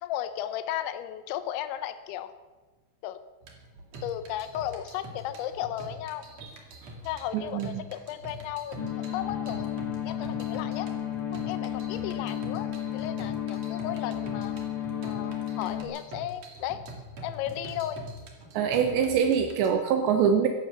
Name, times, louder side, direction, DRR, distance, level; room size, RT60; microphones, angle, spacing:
voice 1, 0.0-2.3 3.0-3.2 4.0-6.3 7.0-9.7 10.0-10.9 11.3-12.7 12.9-14.5 15.0-16.8 17.2-18.0, left 11 dB, 90° left, 11 dB, 3.2 m, -35 dB
sound 1, 3.4-19.7, right 1 dB, 45° right, 2.8 m, -45 dB
voice 2, 7.3-7.8 18.5-20.5, right 7 dB, 80° right, 5 dB, 3.1 m, -24 dB
sound 2, 8.8-15.8, left 10 dB, 40° left, 1.4 m, -33 dB
16.0 x 11.0 x 7.0 m, 1.3 s
omnidirectional pair, 5.2 m